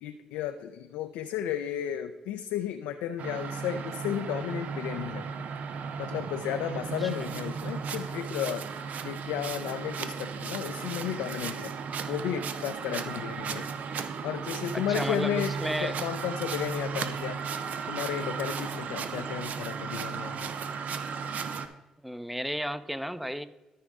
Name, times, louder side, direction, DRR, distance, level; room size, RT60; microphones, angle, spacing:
voice 1, 0.0-5.3 6.0-8.7 9.0-11.7 12.1-13.7 14.2-15.5 15.8-17.4 17.9-20.5, left 10 dB, 85° left, 7 dB, 0.4 m, -33 dB
sound 1, 3.2-21.7, right 6 dB, 65° right, 0.7 m, -35 dB
voice 2, 14.7-16.0 22.0-23.4, equal, 5° right, 13 dB, 0.7 m, -33 dB
13.0 x 5.0 x 3.7 m, 1.1 s
supercardioid pair, 50°, 3 cm